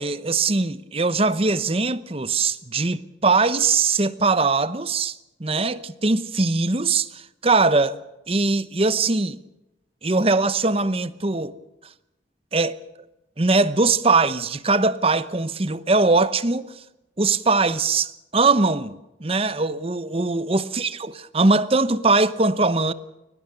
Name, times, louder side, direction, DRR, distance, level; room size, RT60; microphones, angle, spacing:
voice 1, 0.0-8.0 8.3-9.4 10.0-11.5 12.5-12.8 13.4-16.7 17.2-19.0 19.2-22.9, right 3 dB, 30° right, 0.9 m, -21 dB
22.5 x 20.0 x 6.9 m
head